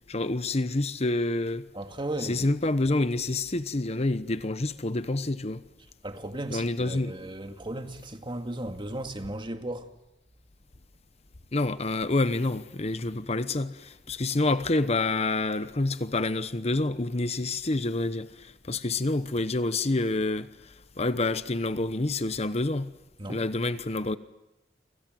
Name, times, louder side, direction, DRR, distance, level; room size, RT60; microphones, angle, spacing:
voice 1, 0.1-1.7 2.2-5.6 6.5-7.1 11.5-22.9 23.3-24.2, left 2 dB, 40° left, 1.0 m, -28 dB
voice 2, 1.7-2.5 6.0-9.9 23.2-23.4, right 1 dB, 30° right, 2.0 m, -36 dB
30.0 x 26.0 x 7.8 m
head